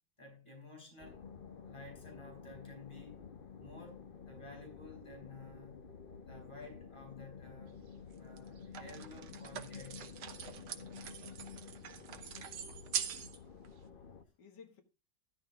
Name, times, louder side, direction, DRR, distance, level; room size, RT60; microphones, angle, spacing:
voice 1, 0.2-1.2 1.6-3.2 3.6-5.9 6.2-7.8 8.2-10.1, left 3 dB, 15° left, 4.4 m, -53 dB
sound 1, 1.0-14.2, left 6 dB, 45° left, 0.7 m, -51 dB
sound 2, 7.7-7.8 8.4-13.4 13.6-13.7, right 9 dB, 70° right, 1.5 m, -43 dB
voice 2, 12.8-14.8, left 6 dB, 75° left, 2.2 m, -61 dB
12.5 x 12.0 x 2.4 m
omnidirectional pair, 1.9 m